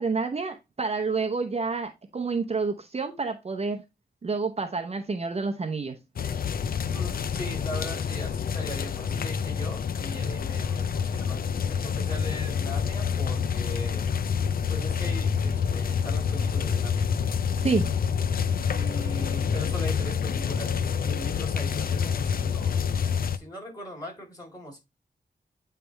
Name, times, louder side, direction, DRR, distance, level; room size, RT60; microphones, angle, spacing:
voice 1, 0.0-3.8 4.2-6.0 17.6-17.9, right 4 dB, 40° right, 0.8 m, -29 dB
sound 1, 6.2-23.4, left 7 dB, 60° left, 0.5 m, -27 dB
voice 2, 6.8-11.4 11.7-14.1 14.7-17.1 18.7-24.8, equal, 20° left, 4.0 m, -40 dB
8.7 x 3.3 x 3.3 m
wide cardioid pair, 100°, 17 cm